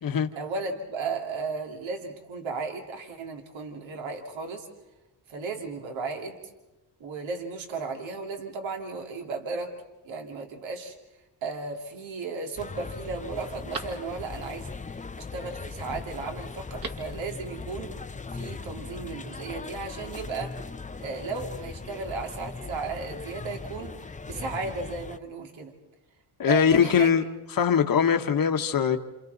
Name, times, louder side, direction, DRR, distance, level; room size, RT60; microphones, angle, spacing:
voice 1, 0.4-4.7 5.3-6.4 7.0-9.8 10.0-10.9 11.4-17.9 18.3-20.6 21.0-25.7 26.4-27.1, right 4 dB, 75° right, 2.7 m, -35 dB
Telephone, 11.4-12.0 12.5-12.6 13.0-14.5 16.5-17.2 17.5-17.6, right 4 dB, 50° right, 2.7 m, -42 dB
sound 1, 12.6-25.2, left 4 dB, 15° left, 0.7 m, -39 dB
voice 2, 26.4-27.2 27.5-29.0, left 7 dB, 45° left, 1.4 m, -21 dB
28.5 x 28.0 x 4.0 m
cardioid pair, 70°, 46 cm